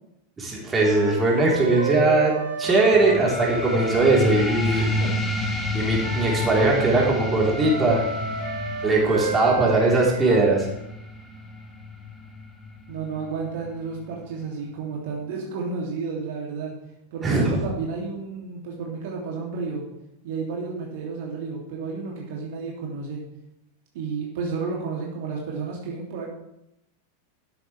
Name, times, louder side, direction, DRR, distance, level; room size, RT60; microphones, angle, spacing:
voice 1, 0.4-4.9 5.7-8.1 8.8-10.7 17.2-17.7, right 2 dB, 15° right, -3 dB, 3.9 m, -20 dB
sound 1, 0.8-5.1 6.0-10.6, right 4 dB, 70° right, 2.5 m, -31 dB
sound 2, 2.9-14.0, left 2 dB, 10° left, 2.2 m, -30 dB
voice 2, 12.9-16.7 17.1-19.8 20.2-23.2 23.9-26.3, right 4 dB, 50° right, -2 dB, 2.9 m, -31 dB
12.5 x 11.5 x 3.5 m, 0.83 s
figure-of-eight pair, 90°, 0 cm